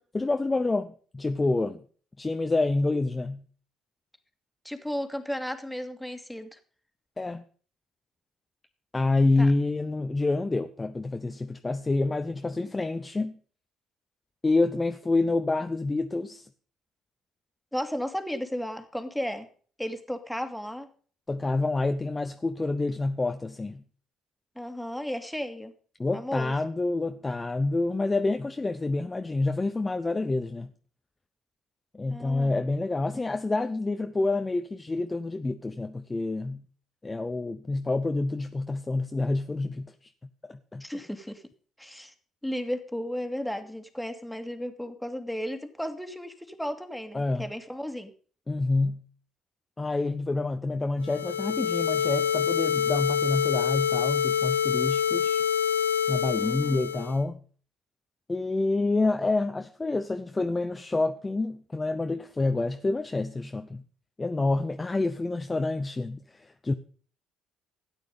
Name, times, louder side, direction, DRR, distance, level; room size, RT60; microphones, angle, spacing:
voice 1, 0.1-1.8 2.2-3.4 7.2-7.4 8.9-13.4 14.4-16.5 21.3-23.8 26.0-30.7 31.9-36.6 37.0-39.9 40.4-40.8 47.1-47.5 48.5-49.0 49.8-55.4 56.1-57.4 58.3-63.8 64.2-66.7, left 2 dB, 20° left, 0.8 m, -28 dB
voice 2, 4.6-6.6 9.4-9.5 17.7-19.5 19.8-20.9 24.6-25.7 26.1-26.5 32.1-32.5 40.8-41.4 41.8-42.1 42.4-48.1 56.3-56.8, equal, 5° left, 2.2 m, -34 dB
sound 1, 51.0-57.2, left 8 dB, 85° left, 0.7 m, -26 dB
13.5 x 9.2 x 5.2 m
hypercardioid pair, 50°, 0 cm